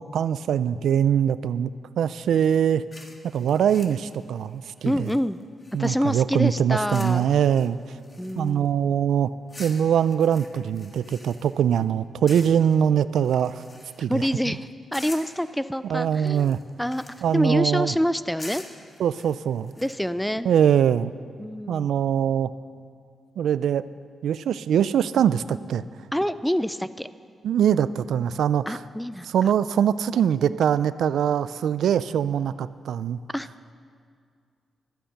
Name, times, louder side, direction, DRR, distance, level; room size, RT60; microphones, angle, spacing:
voice 1, 0.0-1.7 2.0-2.8 3.3-5.1 5.7-8.0 8.4-9.3 9.6-13.6 14.0-14.3 15.8-16.6 17.2-17.9 19.0-19.7 20.5-21.1 21.7-22.5 23.4-23.8 24.2-25.8 27.4-28.8 29.3-33.2, right 9 dB, 85° right, 16 dB, 0.3 m, -22 dB
sound 1, 2.9-6.1 6.9-7.2 7.5-8.7 9.5-11.8 12.3-12.8 13.1-14.2 14.9-15.4 16.2-17.4 18.4-19.9, left 2 dB, 30° left, 1.6 m, -45 dB
voice 2, 4.8-5.4 5.8-7.3 8.2-8.7 14.1-17.0 17.3-18.6 19.8-20.5 21.4-21.9 26.1-27.1 28.7-29.3 33.3-33.5, equal, 5° left, 14 dB, 0.4 m, -26 dB
13.0 x 10.0 x 6.6 m, 2.2 s
cardioid pair, 80°, 0 cm